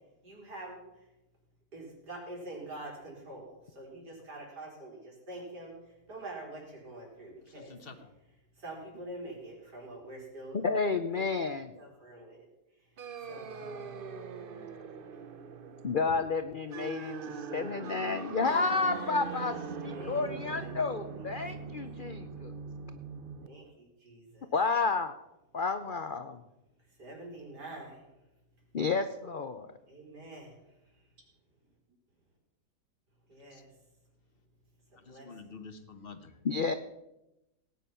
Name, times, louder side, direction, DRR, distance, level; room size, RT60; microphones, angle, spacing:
voice 1, 0.2-1.1 1.7-7.8 8.5-10.6 11.1-11.3 11.7-14.1 19.2-20.7 21.2-21.7 23.4-24.5 26.8-28.3 29.9-31.0 33.3-33.7 34.9-35.6, right 2 dB, 75° right, -2 dB, 4.9 m, -47 dB
voice 2, 7.5-8.1 14.5-14.7 33.5-33.6 35.0-36.4, left 4 dB, 40° left, 9 dB, 1.1 m, -49 dB
voice 3, 10.5-11.7 15.8-19.6 19.8-22.5 24.5-25.1 25.5-26.4 28.7-29.7 36.4-36.7, left 4 dB, 90° left, 10 dB, 0.4 m, -31 dB
sound 1, 13.0-23.5, right 5 dB, 50° right, 0.7 m, -41 dB
17.5 x 9.3 x 5.6 m, 0.94 s
omnidirectional pair, 1.8 m